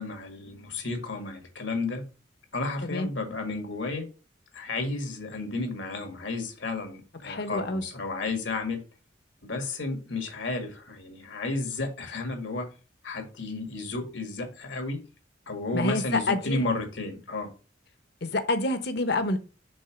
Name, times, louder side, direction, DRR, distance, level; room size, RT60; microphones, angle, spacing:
voice 1, 0.0-2.0 2.5-4.1 4.5-8.8 9.4-12.7 13.0-15.0 15.5-17.5, left 3 dB, 80° left, 1.8 m, -32 dB
voice 2, 7.2-7.8 15.7-16.6 18.2-19.4, left 2 dB, 60° left, 0.9 m, -27 dB
5.4 x 3.8 x 5.9 m
head